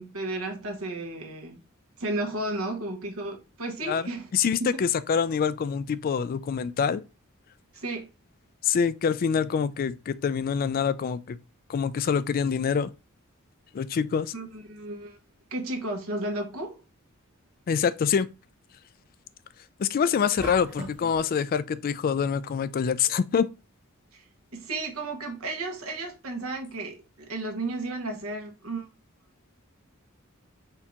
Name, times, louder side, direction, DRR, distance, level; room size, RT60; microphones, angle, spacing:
voice 1, 0.0-1.6 2.0-4.3 4.6-4.8 7.7-8.1 14.3-15.2 15.5-16.8 24.1-24.2 24.5-28.9, right 2 dB, 90° right, 1.3 m, -33 dB
voice 2, 3.9-7.0 8.6-11.4 11.7-12.9 13.7-14.3 17.7-18.3 19.8-23.5, left 6 dB, 45° left, 0.3 m, -25 dB
sound 1, 20.4-21.2, right 1 dB, 10° right, 1.5 m, -38 dB
4.5 x 2.8 x 3.4 m
head